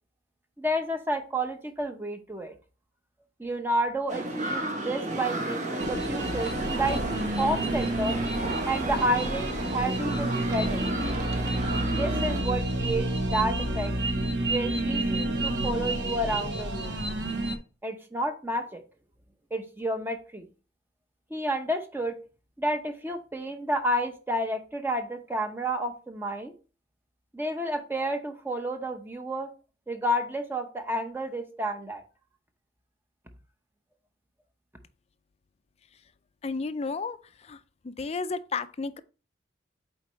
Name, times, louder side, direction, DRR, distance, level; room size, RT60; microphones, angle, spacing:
voice 1, 0.6-2.5 3.4-8.2 8.7-10.9 11.9-13.9 14.5-17.0 17.8-18.8 19.5-20.5 21.3-22.1 22.6-26.5 27.3-29.5 29.9-32.0, right 1 dB, 10° right, 0.7 m, -30 dB
sound 1, 4.1-12.4, right 2 dB, 45° right, 1.1 m, -32 dB
sound 2, 5.8-17.6, right 1 dB, 70° right, 0.9 m, -29 dB
voice 2, 36.4-37.2 37.5-37.6 37.8-39.0, left 4 dB, 35° left, 0.4 m, -32 dB
8.1 x 4.2 x 3.0 m
head